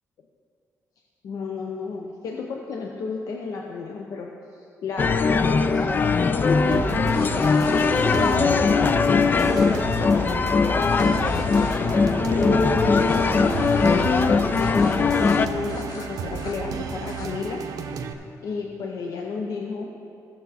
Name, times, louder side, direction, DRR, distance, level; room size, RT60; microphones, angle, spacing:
voice 1, 1.2-7.0 7.7-13.2 13.7-17.6 18.4-19.9, left 4 dB, 65° left, 1 dB, 0.7 m, -32 dB
sound 1, 5.0-15.5, left 4 dB, 30° left, 0.3 m, -20 dB
sound 2, 6.7-18.1, right 6 dB, 75° right, 0.6 m, -33 dB
sound 3, 7.1-8.4 9.4-9.7 10.9-11.8 13.0-14.3 14.5-15.0 15.2-15.4 15.7-16.6 17.0-17.3, left 4 dB, 85° left, 1.0 m, -42 dB
15.0 x 7.0 x 4.1 m, 2.7 s
cardioid pair, 130°, 6 cm